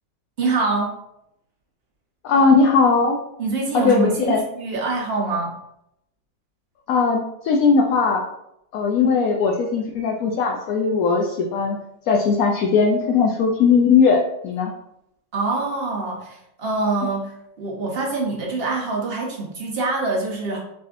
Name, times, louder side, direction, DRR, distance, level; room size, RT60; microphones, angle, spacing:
voice 1, 0.4-1.0 3.4-5.6 15.3-20.6, right 3 dB, 45° right, -2 dB, 0.9 m, -25 dB
voice 2, 2.2-3.2 3.7-4.4 6.9-8.2 8.7-11.8 12.1-14.7, left 5 dB, 70° left, 0 dB, 0.9 m, -18 dB
6.1 x 2.7 x 2.5 m, 0.79 s
omnidirectional pair, 1.9 m